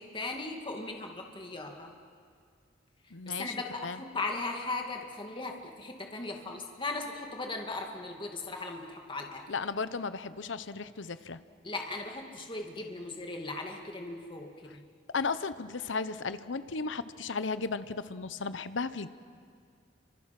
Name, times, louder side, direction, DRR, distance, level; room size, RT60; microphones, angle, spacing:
voice 1, 0.0-1.9 3.2-9.4 11.6-14.8, left 3 dB, 25° left, 2 dB, 2.3 m, -38 dB
voice 2, 3.1-3.5 3.8-4.0 9.5-11.4 15.1-19.1, left 4 dB, 75° left, 13 dB, 0.9 m, -35 dB
30.0 x 25.5 x 6.0 m, 2.2 s
head